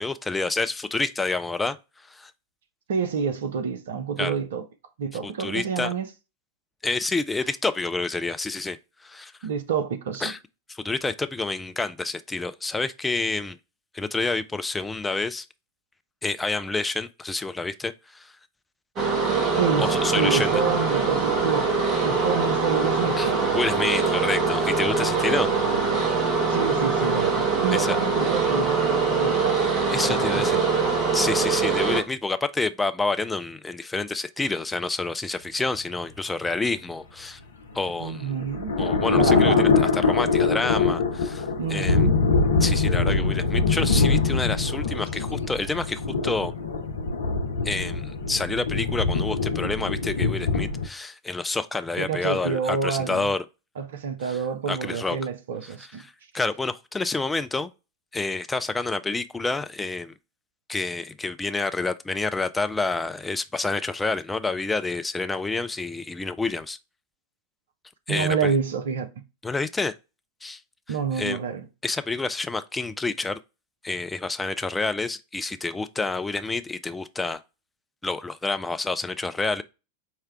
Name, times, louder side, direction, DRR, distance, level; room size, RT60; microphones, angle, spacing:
voice 1, 0.0-1.8 2.1-2.3 4.2-4.4 5.2-5.9 6.8-8.8 9.0-9.3 10.2-10.4 10.7-13.6 13.9-15.5 16.2-18.3 19.8-20.6 23.2-25.5 27.7-28.0 29.9-30.6 31.1-37.4 37.7-38.3 38.8-42.1 42.6-46.5 47.6-53.4 54.3-54.4 54.7-55.2 56.0-57.7 58.1-60.1 60.7-66.8 68.1-68.5 69.4-69.9 70.4-70.6 70.9-71.4 71.8-73.4 73.8-77.4 78.0-79.6, left 3 dB, 10° left, 0.3 m, -28 dB
voice 2, 2.9-4.7 5.0-6.1 9.4-10.3 19.6-21.7 22.0-23.5 25.7-25.9 26.5-29.6 30.0-30.7 38.0-38.7 39.2-39.7 41.6-42.2 52.0-53.3 53.8-56.0 68.1-69.1 70.9-71.7, right 6 dB, 60° right, 0.6 m, -28 dB
sound 1, 19.0-32.0, right 4 dB, 30° right, 1.0 m, -23 dB
sound 2, 37.8-50.9, left 4 dB, 70° left, 0.6 m, -23 dB
4.7 x 2.2 x 3.3 m
figure-of-eight pair, 90°, 0 cm